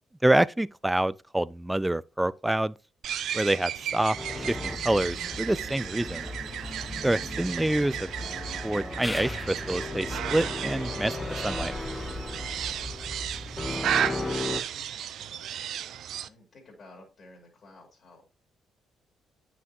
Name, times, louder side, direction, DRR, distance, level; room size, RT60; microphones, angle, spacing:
voice 1, 0.2-2.7 3.3-6.3 7.0-8.1 8.6-11.1 11.4-11.7, right 1 dB, 10° right, 0.4 m, -27 dB
sound 1, 3.0-16.3, right 10 dB, 70° right, 0.4 m, -34 dB
sound 2, 4.2-14.6, left 2 dB, 20° left, 1.0 m, -36 dB
voice 2, 14.7-15.4 16.2-18.3, left 1 dB, 55° left, 3.1 m, -53 dB
9.1 x 5.9 x 2.9 m
hypercardioid pair, 50°, 0 cm